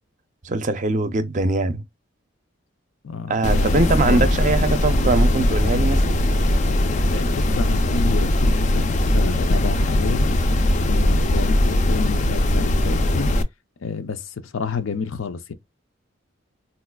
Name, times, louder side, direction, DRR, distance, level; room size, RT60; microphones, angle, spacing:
voice 1, 0.4-1.8 3.3-6.2, right 3 dB, 40° right, 0.5 m, -22 dB
voice 2, 3.0-4.3 7.1-10.3 10.8-13.3 13.8-15.5, left 5 dB, 80° left, 0.6 m, -30 dB
sound 1, 3.4-13.4, left 1 dB, 35° left, 0.4 m, -20 dB
4.1 x 2.4 x 2.2 m
head